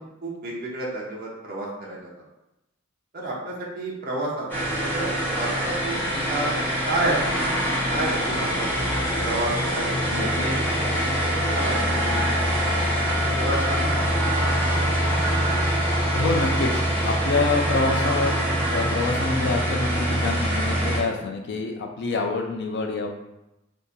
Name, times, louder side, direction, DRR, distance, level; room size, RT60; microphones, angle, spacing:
voice 1, 0.0-2.1 3.1-4.5 4.8-5.1 5.4-7.4 7.9-8.7 9.2-12.5 13.2-14.0, right 2 dB, 45° right, -4 dB, 0.7 m, -30 dB
sound 1, 4.5-21.0, equal, 10° left, 0.8 m, -24 dB
voice 2, 16.1-18.3 18.7-23.1, left 3 dB, 55° left, 3 dB, 0.5 m, -26 dB
2.8 x 2.5 x 3.8 m, 0.91 s
head